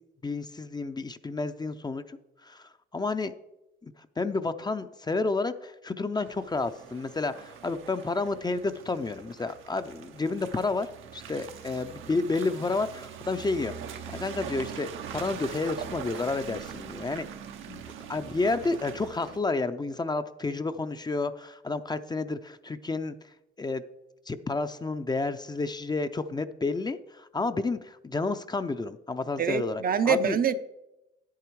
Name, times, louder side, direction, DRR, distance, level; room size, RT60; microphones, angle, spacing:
voice 1, 0.2-3.3 3.8-13.7 14.1-17.3 17.7-17.8 18.1-23.2 23.6-23.8 24.3-30.4, left 3 dB, 20° left, 0.5 m, -30 dB
Car passing by / Engine, 6.2-19.4, right 8 dB, 85° right, 0.9 m, -42 dB
voice 2, 29.4-30.6, right 6 dB, 45° right, 0.6 m, -25 dB
10.0 x 8.4 x 4.7 m
cardioid pair, 90°, 20 cm